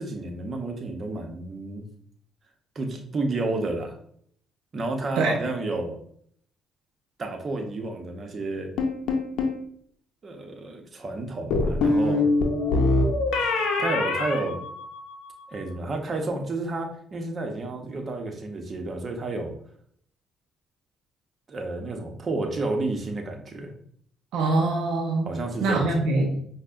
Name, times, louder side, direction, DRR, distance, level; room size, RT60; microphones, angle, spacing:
voice 1, 0.0-1.8 2.7-4.0 4.7-6.0 7.2-8.7 10.2-12.2 13.8-14.6 15.5-19.5 21.5-23.7 25.2-26.0, right 2 dB, 45° right, 3 dB, 0.7 m, -31 dB
sound 1, 8.8-9.6 11.5-15.3, left 2 dB, 75° left, 0.5 m, -24 dB
voice 2, 24.3-25.3 25.6-26.4, right 2 dB, 75° right, 1 dB, 0.4 m, -23 dB
5.3 x 2.1 x 2.5 m, 0.63 s
supercardioid pair, 60°, 0 cm